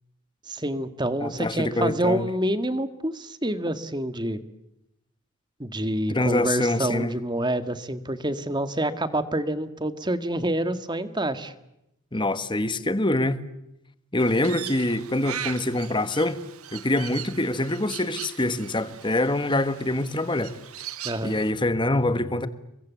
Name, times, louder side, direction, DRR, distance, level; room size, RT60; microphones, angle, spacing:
voice 1, 0.5-4.4 5.6-11.5 21.0-21.4, right 1 dB, 20° right, 1.8 m, -27 dB
voice 2, 1.2-2.3 6.1-7.1 12.1-13.4 14.1-16.4 16.7-20.6 21.2-22.5, left 1 dB, 20° left, 1.5 m, -25 dB
Crow, 14.2-21.5, right 10 dB, 85° right, 1.8 m, -39 dB
29.5 x 23.5 x 8.3 m
head